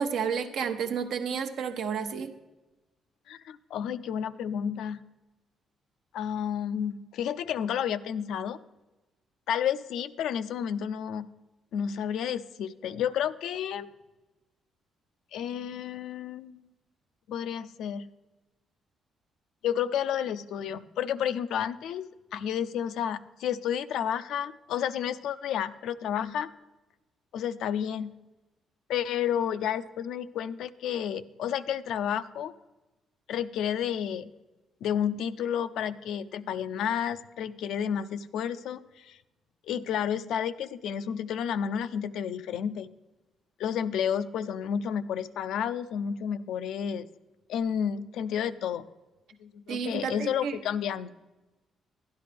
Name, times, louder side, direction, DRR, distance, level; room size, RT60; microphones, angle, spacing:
voice 1, 0.0-2.3 49.7-50.6, right 6 dB, 75° right, 7 dB, 0.8 m, -31 dB
voice 2, 3.3-5.0 6.1-8.6 9.5-11.3 11.7-13.9 15.3-16.7 17.3-18.1 19.6-22.1 22.3-26.5 27.3-28.2 28.9-32.5 33.3-34.3 34.8-39.2 39.6-42.9 43.6-47.1 47.5-48.9 49.4-51.1, left 8 dB, 80° left, 13 dB, 0.4 m, -31 dB
11.0 x 11.0 x 3.4 m, 1.1 s
cardioid pair, 90°, 0 cm